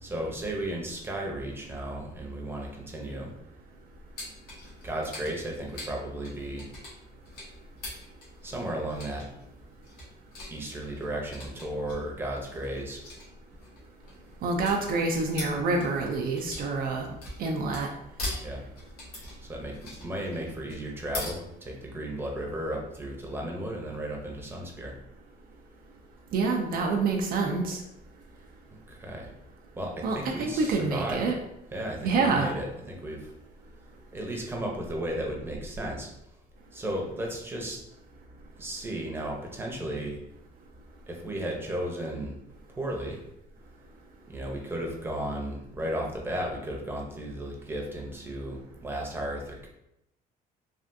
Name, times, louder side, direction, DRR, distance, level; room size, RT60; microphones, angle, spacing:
voice 1, 0.0-3.3 4.8-6.7 8.4-9.3 10.5-13.0 18.4-18.6 19.5-24.9 28.9-29.3 29.8-31.2 31.7-33.3 34.1-36.1 36.7-37.8 38.6-40.2 41.1-42.4 42.8-43.2 44.3-49.7, right 1 dB, 15° right, -1 dB, 0.7 m, -34 dB
sound 1, 4.2-21.3, left 1 dB, 65° left, 1.1 m, -42 dB
voice 2, 14.4-17.1 17.4-17.9 26.3-27.8 30.0-31.3 32.0-32.5, right 3 dB, 60° right, 2 dB, 0.4 m, -27 dB
3.4 x 2.4 x 2.6 m, 0.82 s
cardioid pair, 110°, 17 cm